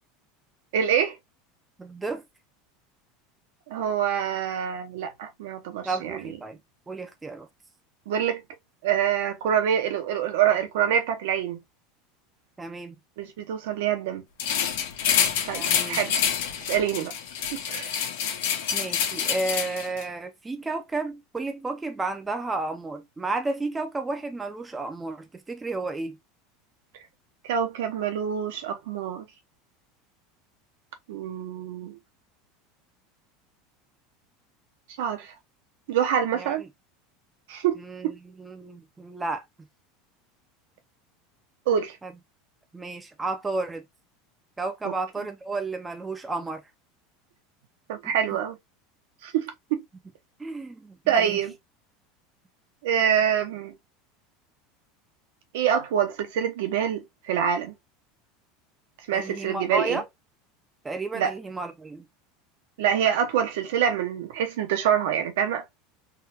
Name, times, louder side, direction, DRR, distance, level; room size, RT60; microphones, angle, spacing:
voice 1, 0.7-1.2 3.7-6.2 8.1-8.4 8.8-11.6 13.2-14.2 15.5-16.2 16.7-17.1 17.5-17.9 27.4-29.3 31.1-32.0 35.0-35.3 35.9-36.6 37.5-38.1 41.7-42.0 44.8-44.9 47.9-48.6 49.2-49.8 51.1-51.5 52.8-53.7 55.5-57.7 59.1-60.0 61.1-61.3 62.8-65.6, right 9 dB, 75° right, 0.8 m, -26 dB
voice 2, 1.8-2.2 5.8-6.6 6.9-7.5 12.6-13.0 15.5-16.0 18.7-26.2 36.3-36.7 37.8-39.4 42.0-42.1 42.7-43.8 44.6-46.6 48.0-48.4 50.4-51.4 59.1-60.1 60.8-62.1, right 3 dB, 10° right, 0.4 m, -32 dB
sound 1, 14.4-20.0, left 8 dB, 85° left, 1.1 m, -27 dB
3.6 x 2.2 x 2.8 m
supercardioid pair, 175°, 0 cm